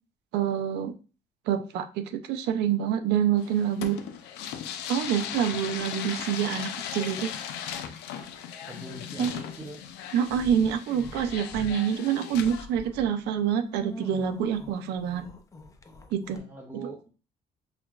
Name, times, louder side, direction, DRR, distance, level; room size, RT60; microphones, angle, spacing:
voice 1, 0.3-0.9 1.5-4.0 4.9-7.3 9.2-9.4 10.1-15.3 16.1-16.4 16.8-16.9, right 8 dB, 80° right, 9 dB, 0.5 m, -27 dB
sound 1, 3.4-12.7, left 9 dB, 90° left, 0.5 m, -37 dB
voice 2, 8.7-9.8 16.3-17.1, right 3 dB, 15° right, -2 dB, 0.7 m, -42 dB
sound 2, 10.2-11.7 12.1-16.4, left 1 dB, 20° left, 0.5 m, -44 dB
5.6 x 2.3 x 2.4 m, 0.34 s
cardioid pair, 110°, 17 cm